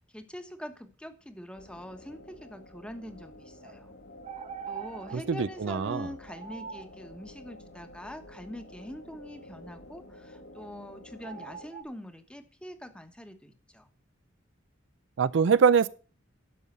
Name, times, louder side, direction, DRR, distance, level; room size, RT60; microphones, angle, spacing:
voice 1, 0.0-3.9 4.7-13.9, equal, 5° left, 1.1 m, -44 dB
sound 1, 1.5-11.7, left 1 dB, 65° left, 1.7 m, -50 dB
sound 2, 3.6-3.8 4.2-5.2 6.3-6.9 10.5-10.7 11.2-11.8, right 7 dB, 40° right, 1.4 m, -42 dB
voice 2, 5.4-6.1 15.2-15.9, right 6 dB, 65° right, 0.4 m, -23 dB
12.0 x 5.5 x 6.7 m
head